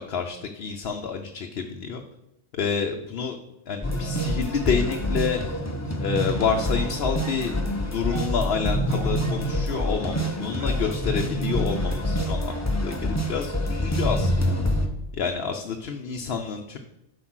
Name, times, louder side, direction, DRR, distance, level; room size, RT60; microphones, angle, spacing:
voice 1, 0.1-2.0 2.5-3.4 3.7-5.4 6.0-14.5 15.1-16.8, left 6 dB, 70° left, 4 dB, 0.9 m, -28 dB
sound 1, 3.8-14.9, equal, 15° left, 0.8 m, -26 dB
sound 2, 6.7-7.5 8.1-8.4 8.9-9.5 9.7-10.0 10.6-11.4 12.5-12.7, right 2 dB, 80° right, 1.5 m, -42 dB
7.6 x 5.4 x 6.2 m, 0.88 s
omnidirectional pair, 1.1 m